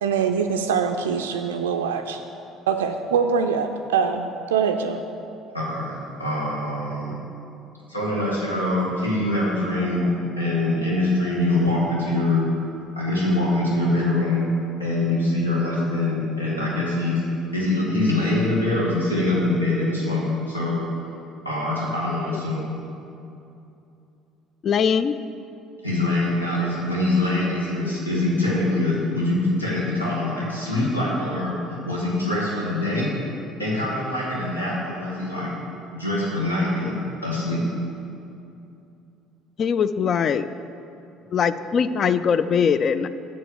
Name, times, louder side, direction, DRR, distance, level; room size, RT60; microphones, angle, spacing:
voice 1, 0.0-2.2 2.7-5.0, right 6 dB, 70° right, 5 dB, 0.3 m, -23 dB
voice 2, 5.5-7.2 7.9-10.1 10.4-12.5 13.0-14.5 14.8-17.2 17.5-20.8 21.5-22.6 25.8-33.1 33.6-35.5 35.9-37.0 37.2-37.6, left 2 dB, 85° left, -6 dB, 1.8 m, -24 dB
voice 3, 24.6-25.1 39.6-40.5 41.3-43.1, left 7 dB, 40° left, 13 dB, 0.4 m, -21 dB
7.7 x 6.8 x 6.7 m, 2.7 s
figure-of-eight pair, 55°, 0 cm